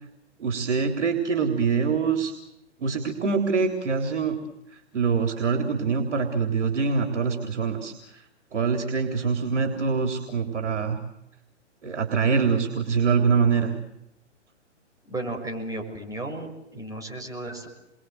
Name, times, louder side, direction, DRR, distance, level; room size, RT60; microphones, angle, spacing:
voice 1, 0.4-2.3 2.8-4.4 4.7-8.2 8.5-11.0 11.8-13.7, right 5 dB, 70° right, 4 dB, 3.7 m, -24 dB
voice 2, 15.1-17.7, right 1 dB, 10° right, 1 dB, 6.5 m, -34 dB
30.0 x 23.5 x 8.0 m, 0.88 s
figure-of-eight pair, 120°, 36 cm